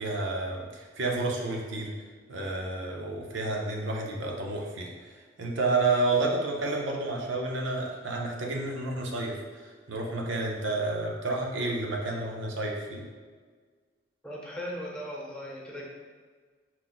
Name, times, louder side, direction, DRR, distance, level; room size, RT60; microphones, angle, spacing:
voice 1, 0.0-1.9 2.3-13.0, right 2 dB, 80° right, 0 dB, 0.6 m, -30 dB
voice 2, 14.2-15.8, equal, 5° left, -5 dB, 0.5 m, -38 dB
4.4 x 2.0 x 3.9 m, 1.5 s
head